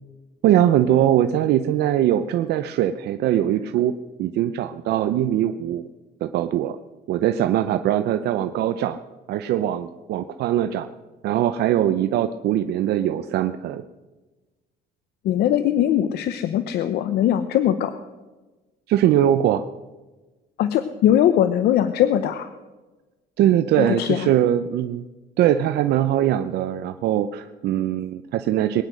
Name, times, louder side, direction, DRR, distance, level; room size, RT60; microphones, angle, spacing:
voice 1, 0.4-3.9 4.2-5.9 6.2-6.8 7.1-9.0 9.3-10.9 11.2-13.8 18.9-19.6 23.4-25.0 25.4-28.8, right 11 dB, 75° right, 9 dB, 0.7 m, -21 dB
voice 2, 15.2-17.9 20.6-22.5 23.8-24.3, left 11 dB, 75° left, 11 dB, 0.9 m, -20 dB
21.5 x 10.0 x 6.3 m, 1.2 s
cardioid pair, 110°, 17 cm